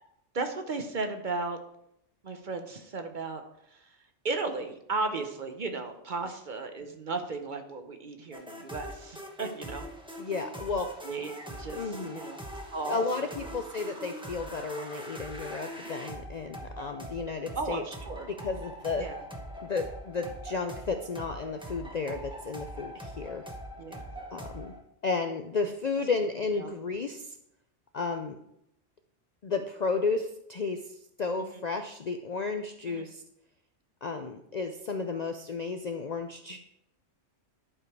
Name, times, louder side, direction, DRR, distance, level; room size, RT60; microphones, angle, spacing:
voice 1, 0.3-1.6 2.2-3.4 3.7-4.0 4.2-9.9 10.7-12.4 12.7-13.5 17.5-18.3 19.0-19.2 23.8-24.1 26.5-26.7 31.4-31.6 32.9-33.0, right 3 dB, 45° right, 6 dB, 0.8 m, -35 dB
sound 1, 8.3-24.8, equal, 5° right, 0.9 m, -42 dB
voice 2, 10.2-10.9 11.7-12.2 12.9-17.8 18.3-19.1 19.6-23.5 24.3-24.7 25.0-27.4 27.9-28.4 29.4-30.8 31.2-33.2 34.0-36.6, left 4 dB, 55° left, 6 dB, 0.5 m, -33 dB
11.0 x 5.0 x 4.6 m, 0.78 s
omnidirectional pair, 1.3 m